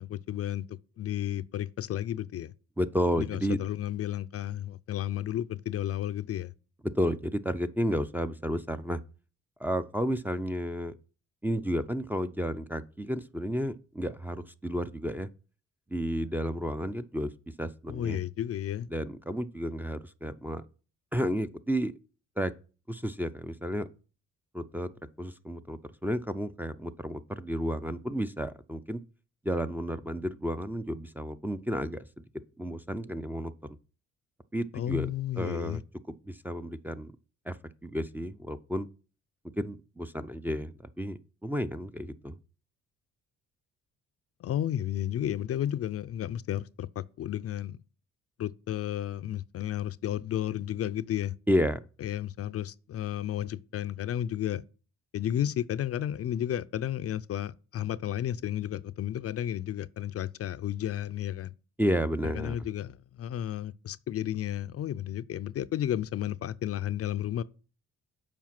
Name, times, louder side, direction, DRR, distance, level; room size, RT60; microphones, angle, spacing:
voice 1, 0.0-2.5 3.2-6.5 17.9-18.9 34.7-35.8 44.4-47.8 48.4-51.3 52.0-54.6 55.1-61.5 62.2-67.4, left 11 dB, 50° left, 0.4 m, -32 dB
voice 2, 2.8-3.6 6.9-9.0 9.6-11.0 11.4-15.3 15.9-17.3 17.6-18.2 18.9-20.6 21.1-21.9 22.4-22.5 22.9-23.9 24.5-24.9 25.2-29.0 29.4-32.2 32.6-33.8 34.5-35.1 35.4-35.8 36.1-37.1 37.5-37.6 37.8-38.9 39.6-42.4 51.5-51.8 61.8-62.6, equal, 5° right, 0.5 m, -32 dB
7.3 x 5.1 x 5.9 m
cardioid pair, 90°, 30 cm